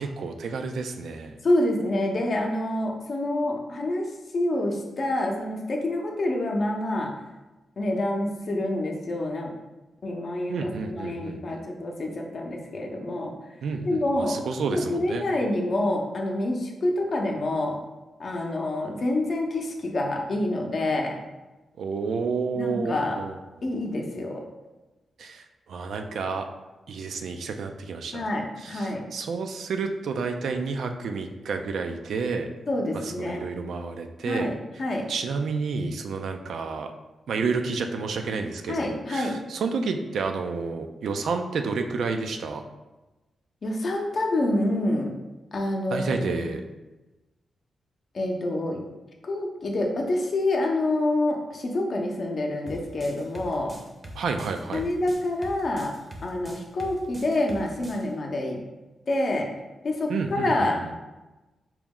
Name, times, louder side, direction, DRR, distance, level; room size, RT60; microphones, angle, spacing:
voice 1, 0.0-1.4 10.5-11.6 13.6-15.2 21.8-23.4 25.2-26.4 26.9-28.2 28.6-32.5 32.9-34.5 35.1-36.9 37.3-42.6 45.9-46.6 54.1-54.8 60.1-60.9, right 4 dB, 75° right, 6 dB, 0.3 m, -30 dB
voice 2, 1.4-7.1 7.8-9.5 10.0-13.3 13.8-14.4 14.7-17.8 18.2-21.2 22.6-23.2 23.6-24.4 28.1-29.0 32.7-33.4 34.2-35.0 38.7-39.3 43.6-45.1 45.5-46.4 48.1-48.8 49.2-53.7 54.7-55.9 56.2-58.6 59.1-59.5 59.8-61.0, left 1 dB, 50° left, 1 dB, 0.6 m, -27 dB
sound 1, 52.7-58.0, equal, 25° right, 0.6 m, -42 dB
4.4 x 2.0 x 3.6 m, 1.1 s
cardioid pair, 95°, 0 cm